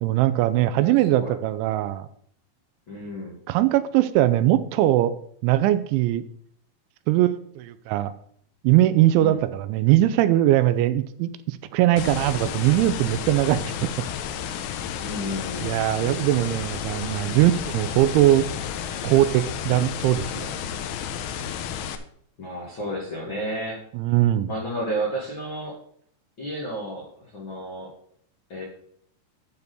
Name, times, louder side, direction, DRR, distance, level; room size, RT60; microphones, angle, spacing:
voice 1, 0.0-2.1 3.5-5.1 5.4-6.2 7.1-8.1 8.6-13.9 15.6-18.5 19.0-20.5 23.9-24.5, right 14 dB, 85° right, 12 dB, 2.8 m, -21 dB
voice 2, 0.8-1.3 2.9-3.4 9.2-9.4 15.0-15.8 22.4-23.8 24.5-25.8 26.4-27.9 28.5-28.7, equal, 70° left, -3 dB, 1.1 m, -32 dB
sound 1, 12.0-22.0, left 8 dB, 90° left, 2.2 m, -32 dB
12.0 x 4.1 x 6.7 m, 0.64 s
omnidirectional pair, 5.5 m